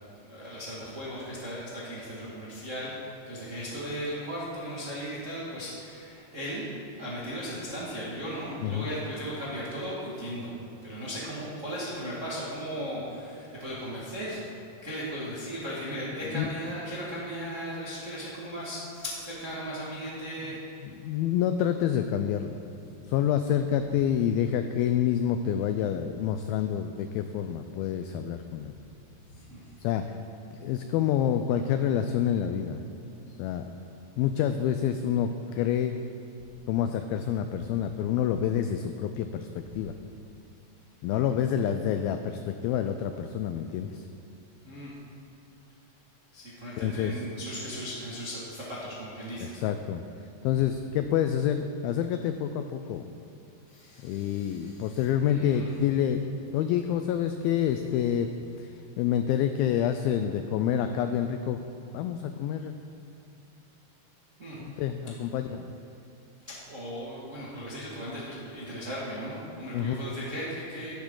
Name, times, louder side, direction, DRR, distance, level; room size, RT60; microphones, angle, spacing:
voice 1, 0.2-6.7 7.0-10.5 10.8-14.4 14.8-20.5 29.3-29.7 39.7-39.8 41.1-41.2 44.6-44.9 46.3-49.6 53.7-55.7 64.4-64.6 65.3-65.4 66.4-71.0, equal, 50° right, -8 dB, 0.9 m, -37 dB
voice 2, 20.8-22.6 23.1-28.7 29.8-30.2 30.6-32.8 33.4-33.7 34.2-36.0 36.7-39.9 41.0-44.1 46.8-47.2 49.4-50.0 50.4-53.1 54.0-56.2 56.5-58.3 58.6-61.6 61.9-62.8 64.8-65.7 69.7-70.0, left 9 dB, 90° left, 8 dB, 2.1 m, -28 dB
13.5 x 12.0 x 3.9 m, 2.7 s
omnidirectional pair, 4.8 m